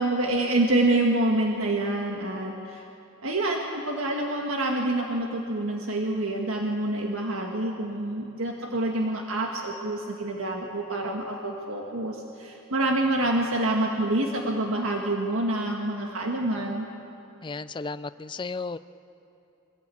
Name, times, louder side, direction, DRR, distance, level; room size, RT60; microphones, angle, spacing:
voice 1, 0.0-2.9 3.2-16.9, right 1 dB, 80° right, 1 dB, 1.7 m, -27 dB
voice 2, 17.4-18.8, left 4 dB, 25° left, 14 dB, 0.4 m, -34 dB
23.5 x 16.0 x 8.5 m, 2.7 s
head